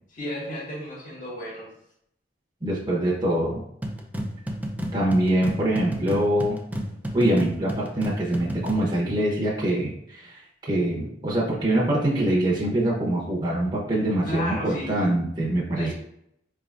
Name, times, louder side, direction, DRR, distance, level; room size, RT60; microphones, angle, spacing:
voice 1, 0.1-1.7 14.2-15.1 15.8-15.9, left 1 dB, 45° left, -7 dB, 1.5 m, -33 dB
voice 2, 2.6-3.6 4.9-6.6 7.1-15.9, right 1 dB, 25° right, -4 dB, 0.8 m, -24 dB
sound 1, 3.8-8.9, equal, 10° right, 0.4 m, -32 dB
4.7 x 3.4 x 2.4 m, 0.73 s
head